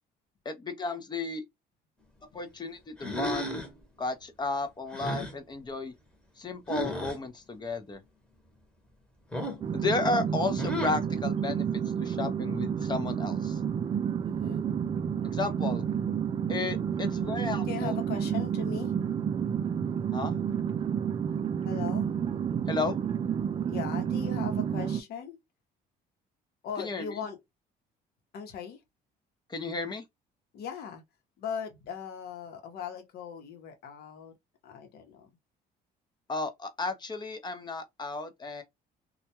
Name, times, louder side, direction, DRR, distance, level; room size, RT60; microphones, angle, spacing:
voice 1, 0.4-1.4 2.3-3.6 4.0-5.9 6.4-8.0 9.7-11.6 12.0-13.6 15.2-15.9 16.5-18.0 20.1-20.3 22.7-23.0 26.8-27.2 29.5-30.0 36.3-38.6, left 3 dB, 25° left, 0.6 m, -33 dB
sound 1, 3.0-3.8 4.9-5.3 6.7-7.2 9.3-9.7 10.6-11.1, equal, 5° left, 1.0 m, -33 dB
sound 2, 9.6-25.0, right 8 dB, 30° right, 0.3 m, -30 dB
voice 2, 14.2-14.7 17.2-17.3 17.6-18.9 21.6-22.1 23.7-25.4 26.6-27.4 28.3-28.8 30.5-31.0 31.4-34.4 34.6-35.4, left 7 dB, 70° left, 0.9 m, -39 dB
2.3 x 2.2 x 2.8 m
cardioid pair, 110°, 17 cm